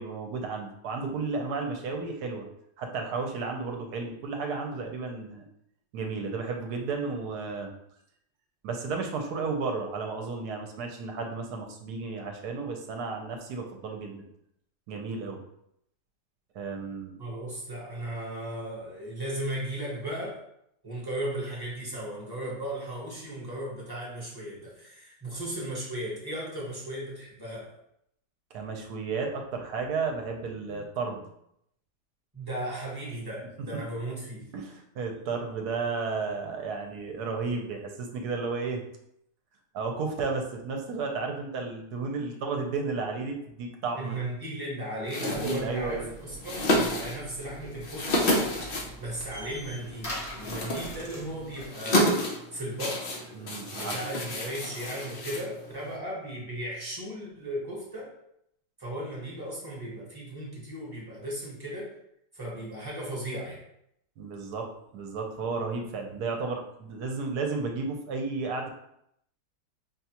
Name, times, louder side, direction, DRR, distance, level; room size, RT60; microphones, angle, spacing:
voice 1, 0.0-2.5 2.8-5.4 5.9-7.7 8.6-14.3 14.9-15.4 16.5-17.1 28.5-31.3 34.5-38.8 39.7-44.2 45.3-46.1 53.3-54.0 64.2-64.7 64.9-68.7, right 4 dB, 70° right, 3 dB, 1.1 m, -33 dB
voice 2, 17.2-20.4 20.8-27.7 32.3-34.5 43.9-48.4 48.6-52.2 52.5-53.1 53.7-58.1 58.8-62.0 62.3-63.6, right 1 dB, 15° right, -5 dB, 0.8 m, -36 dB
sound 1, 45.0-56.0, left 1 dB, 90° left, 0.5 m, -31 dB
sound 2, 45.3-51.7, equal, 35° left, 0.5 m, -44 dB
5.3 x 2.3 x 2.8 m, 0.75 s
omnidirectional pair, 1.9 m